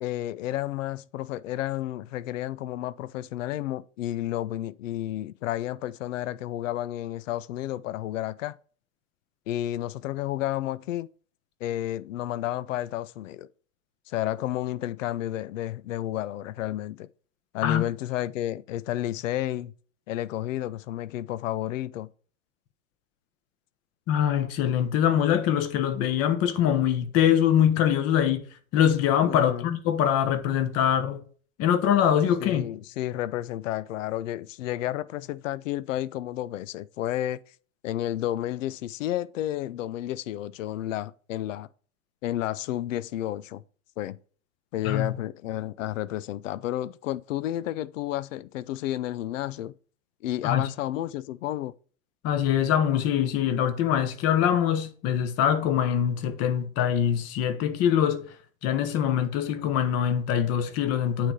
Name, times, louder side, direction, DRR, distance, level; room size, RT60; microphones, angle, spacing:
voice 1, 0.0-8.6 9.5-11.1 11.6-13.5 14.1-17.1 17.5-19.7 20.1-22.1 29.2-29.7 32.4-37.4 37.8-41.7 42.2-43.6 44.0-44.2 44.7-49.7 50.2-51.7, left 13 dB, 65° left, 0.6 m, -31 dB
voice 2, 24.1-28.4 28.7-31.2 31.6-32.7 44.8-45.2 50.4-50.7 52.2-58.3 58.6-61.3, left 9 dB, 35° left, 1.0 m, -23 dB
8.9 x 3.3 x 5.7 m
hypercardioid pair, 105°, 41 cm